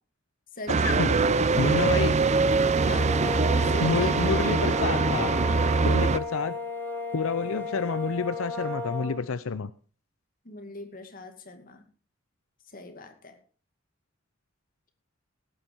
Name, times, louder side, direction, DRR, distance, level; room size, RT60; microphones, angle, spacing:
voice 1, 0.5-1.2 1.6-2.0 2.8-3.1 3.7-4.1 10.4-11.8 12.7-13.4, left 2 dB, 45° left, 6 dB, 2.3 m, -41 dB
sound 1, 0.7-6.2, right 4 dB, 35° right, 0.6 m, -23 dB
voice 2, 1.6-2.2 3.8-5.3 5.8-6.6 7.1-9.7, left 4 dB, 85° left, 14 dB, 0.6 m, -28 dB
sound 2, 2.6-9.2, left 2 dB, 10° left, 3.3 m, -34 dB
17.0 x 9.2 x 4.7 m, 0.38 s
head